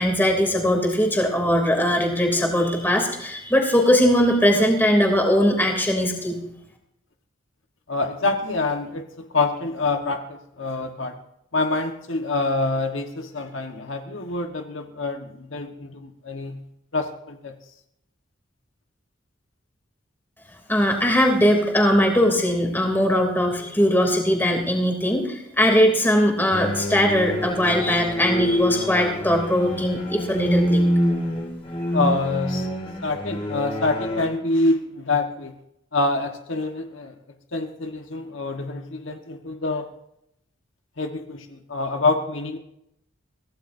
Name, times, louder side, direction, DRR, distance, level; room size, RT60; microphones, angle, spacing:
voice 1, 0.0-6.4 20.7-30.8, equal, 10° left, 1 dB, 2.9 m, -20 dB
voice 2, 7.9-11.2 11.5-16.6 16.9-17.5 31.9-32.7 33.0-35.5 35.9-37.1 37.5-39.9 41.0-42.6, left 3 dB, 75° left, 5 dB, 1.3 m, -26 dB
sound 1, 26.5-34.3, equal, 30° left, 4.2 m, -26 dB
23.5 x 16.5 x 2.7 m, 0.79 s
head